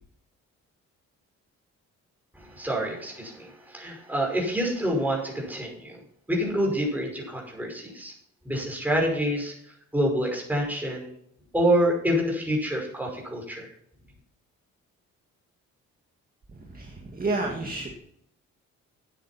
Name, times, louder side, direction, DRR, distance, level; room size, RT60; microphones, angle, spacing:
voice 1, 2.4-6.0 6.3-8.1 8.5-9.5 9.9-11.1 11.5-13.7, equal, 5° right, -1 dB, 5.6 m, -27 dB
voice 2, 16.5-17.9, right 2 dB, 30° right, 1 dB, 1.9 m, -31 dB
9.4 x 9.1 x 5.7 m, 0.69 s
cardioid pair, 90°, 30 cm